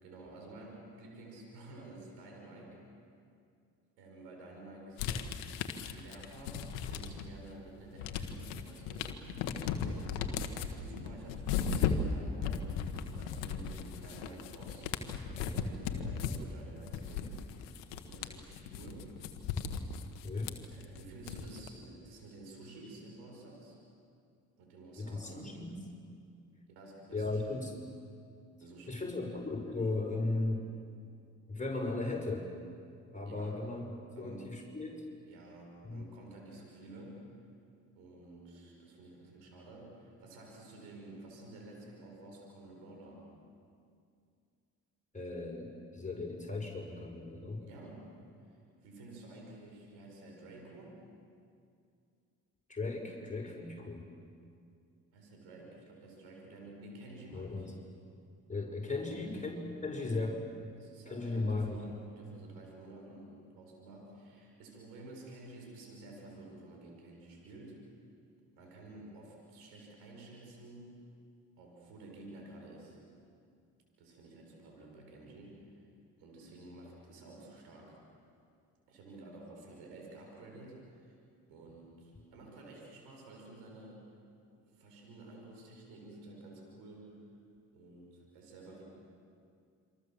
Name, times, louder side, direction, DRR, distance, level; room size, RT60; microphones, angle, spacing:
voice 1, 0.0-2.8 4.0-5.6 5.9-9.3 9.8-12.7 13.1-14.9 15.2-17.4 18.0-19.1 20.7-23.8 24.6-25.6 26.7-27.4 28.6-29.0 33.2-33.6 34.1-34.5 35.3-37.2 38.0-43.2 47.6-48.1 48.5-51.0 55.1-57.7 59.0-59.3 60.0-60.2 60.8-67.8 68.5-70.9 71.6-73.0 74.0-75.9 76.2-78.0 78.9-81.2 81.5-84.1 84.5-87.1 87.7-88.8, right 2 dB, 85° right, 0 dB, 6.0 m, -51 dB
sound 1, 5.0-7.4 7.7-21.7, left 6 dB, 90° left, 1.3 m, -37 dB
voice 2, 25.0-25.8 27.1-27.8 28.9-30.6 31.5-32.5 33.1-33.9 34.2-35.0 35.8-36.0 45.1-47.6 52.7-54.1 57.3-57.7 58.5-60.7 61.1-61.8, left 3 dB, 20° left, 0 dB, 5.6 m, -36 dB
27.5 x 25.0 x 7.5 m, 2.4 s
hypercardioid pair, 45°, 39 cm